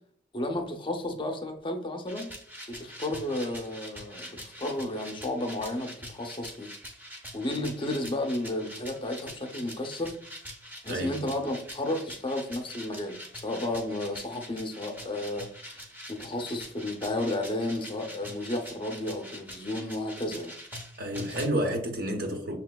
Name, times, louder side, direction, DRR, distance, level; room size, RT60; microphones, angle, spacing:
voice 1, 0.3-2.3 2.7-6.7 7.3-10.1 10.8-20.6, left 1 dB, 30° left, 0.5 m, -33 dB
sound 1, 2.1-21.5, equal, 10° right, 0.7 m, -44 dB
voice 2, 21.0-22.6, right 1 dB, 55° right, 0.8 m, -30 dB
6.6 x 2.8 x 2.2 m
head